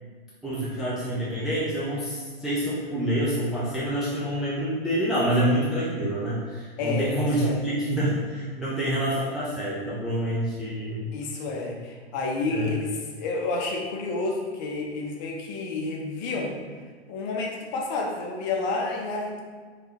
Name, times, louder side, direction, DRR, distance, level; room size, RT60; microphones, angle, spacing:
voice 1, 0.4-11.1 12.5-12.7, right 1 dB, ahead, -9 dB, 0.3 m, -27 dB
voice 2, 6.8-7.6 11.1-16.6 17.1-19.4, left 3 dB, 45° left, 0 dB, 0.7 m, -30 dB
3.5 x 3.3 x 2.8 m, 1.5 s
figure-of-eight pair, 100°, 32 cm